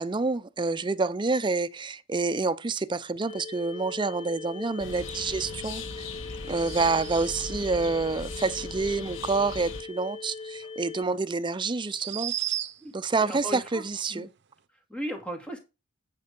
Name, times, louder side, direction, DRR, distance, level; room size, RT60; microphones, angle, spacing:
voice 1, 0.0-6.1 6.5-12.3 12.9-14.3, right 3 dB, 25° right, 0.5 m, -28 dB
sound 1, 3.3-11.0, left 4 dB, 30° left, 0.5 m, -41 dB
sound 2, 4.8-9.8, left 3 dB, 75° left, 1.3 m, -39 dB
sound 3, 6.4-7.5 10.6-10.7 11.8-13.0, right 13 dB, 65° right, 0.7 m, -35 dB
voice 2, 13.2-13.8 14.1-14.3 14.7-15.6, equal, 5° left, 2.2 m, -36 dB
9.1 x 5.3 x 5.3 m
head